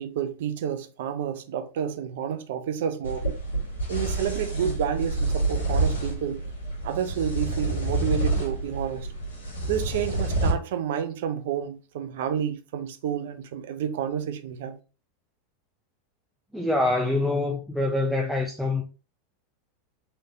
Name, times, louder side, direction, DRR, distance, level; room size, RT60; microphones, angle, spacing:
voice 1, 0.0-3.3 3.9-6.4 6.8-9.1 9.7-14.7, right 8 dB, 65° right, 0.6 m, -30 dB
sound 1, 3.0-10.5, right 2 dB, 85° left, 1.8 m, -28 dB
voice 2, 16.5-18.8, left 2 dB, ahead, 0.6 m, -25 dB
4.1 x 3.3 x 2.8 m
hypercardioid pair, 90°, 0 cm